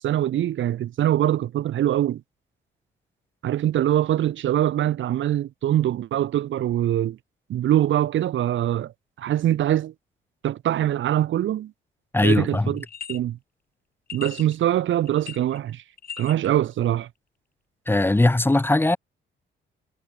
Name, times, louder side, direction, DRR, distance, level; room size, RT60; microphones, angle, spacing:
voice 1, 0.0-2.2 3.4-7.2 7.5-8.9 9.2-9.9 10.4-11.7 12.2-13.4 14.1-15.8 16.2-17.1, right 12 dB, 75° right, 2.8 m, -23 dB
voice 2, 12.1-12.7 17.9-19.0, left 2 dB, 10° left, 1.1 m, -20 dB
sound 1, 12.8-13.2 14.1-14.6 15.1-15.7 16.0-16.5, left 7 dB, 50° left, 2.3 m, -38 dB
cardioid pair, 90°, 20 cm